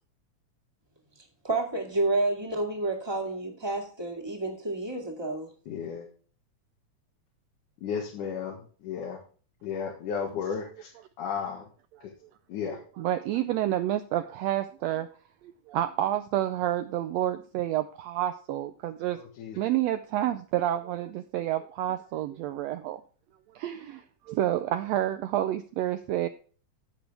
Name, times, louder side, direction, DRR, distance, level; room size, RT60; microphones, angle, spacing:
voice 1, 1.4-5.5, right 2 dB, 10° right, 1 dB, 1.5 m, -29 dB
voice 2, 5.7-6.1 7.8-9.2 9.6-10.9 11.2-11.7 12.0-12.1 12.5-12.8 19.1-19.6, left 6 dB, 85° left, -1 dB, 3.0 m, -34 dB
voice 3, 13.0-15.1 15.4-19.2 19.6-23.0 23.5-26.3, right 12 dB, 80° right, 9 dB, 1.5 m, -29 dB
15.5 x 6.1 x 3.5 m, 0.40 s
omnidirectional pair, 3.5 m